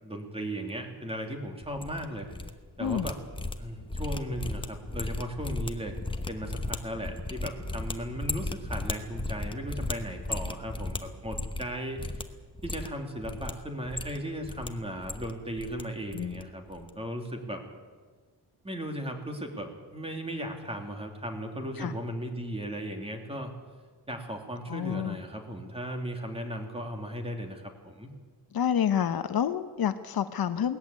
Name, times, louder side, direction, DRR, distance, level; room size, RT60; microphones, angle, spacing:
voice 1, 0.0-2.3 2.8-3.2 3.6-5.9 6.3-12.3 12.6-17.6 18.6-23.5 24.1-28.1, equal, 15° right, 3 dB, 2.8 m, -36 dB
sound 1, 1.6-2.5 2.8-11.7 12.0-12.2 12.5-13.5 13.8-14.7 14.9-15.8 16.1-16.4 16.7-16.9, left 2 dB, 10° left, 1.0 m, -36 dB
voice 2, 24.7-25.2 28.5-30.8, left 9 dB, 60° left, 10 dB, 0.9 m, -28 dB
19.0 x 14.5 x 9.7 m, 1.5 s
wide cardioid pair, 165°, 41 cm